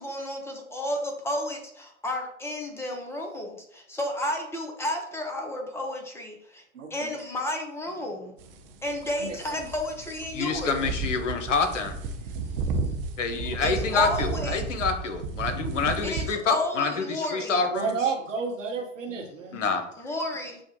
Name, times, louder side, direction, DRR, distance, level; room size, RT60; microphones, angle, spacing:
voice 1, 0.0-6.6 6.9-8.3 8.8-10.8 13.6-14.6 16.0-17.6 20.0-20.6, left 1 dB, 5° left, 2 dB, 0.5 m, -32 dB
voice 2, 6.7-7.2 9.2-9.7 17.7-19.6, right 5 dB, 75° right, 2 dB, 1.0 m, -31 dB
sound 1, 8.4-16.3, right 4 dB, 45° right, 0.6 m, -33 dB
voice 3, 10.3-12.0 13.2-18.0 19.5-19.8, left 4 dB, 70° left, 7 dB, 0.8 m, -27 dB
6.4 x 2.2 x 2.9 m, 0.72 s
figure-of-eight pair, 90°, 38 cm